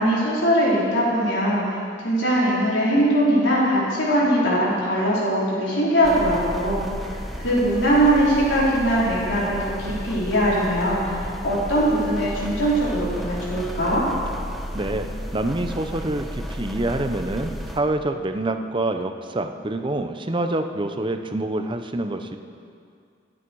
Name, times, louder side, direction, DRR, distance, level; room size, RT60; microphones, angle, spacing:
voice 1, 0.0-1.7 2.0-6.8 7.4-14.0, equal, 80° left, -7 dB, 4.6 m, -21 dB
sound 1, 6.0-17.8, equal, ahead, 1.0 m, -33 dB
voice 2, 14.7-15.1 15.3-22.4, right 2 dB, 25° right, 7 dB, 0.8 m, -26 dB
24.5 x 8.8 x 4.8 m, 2.3 s
head